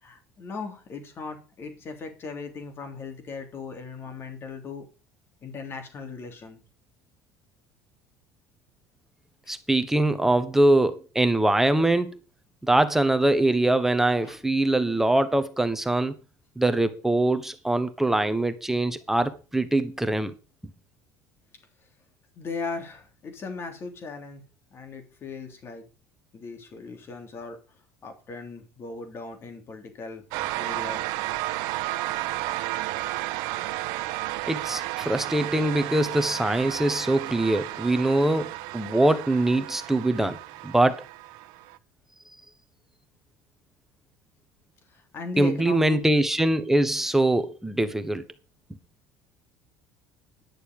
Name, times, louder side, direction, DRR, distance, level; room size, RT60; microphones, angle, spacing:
voice 1, 0.0-4.8 5.4-6.6 14.2-14.4 22.3-24.4 24.7-25.8 26.3-27.6 28.0-30.2 30.5-31.2 44.9-46.0, left 4 dB, 35° left, 3.4 m, -38 dB
voice 2, 9.5-12.2 12.6-16.1 16.6-20.3 34.5-40.4 40.6-41.0 45.4-48.2, right 1 dB, 5° right, 1.3 m, -23 dB
sound 1, 30.3-41.8, right 18 dB, 75° right, 1.0 m, -32 dB
11.0 x 6.9 x 6.8 m
cardioid pair, 130°, 7 cm